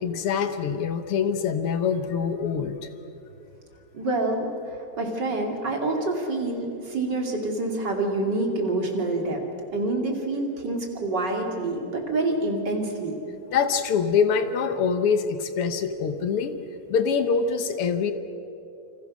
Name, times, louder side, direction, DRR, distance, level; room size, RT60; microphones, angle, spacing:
voice 1, 0.0-2.9 13.5-16.6 16.9-18.1, left 6 dB, 75° left, 8 dB, 1.3 m, -24 dB
voice 2, 3.9-9.4 9.7-13.2, right 2 dB, 30° right, 1 dB, 3.1 m, -27 dB
28.5 x 27.0 x 6.3 m, 2.9 s
omnidirectional pair, 4.2 m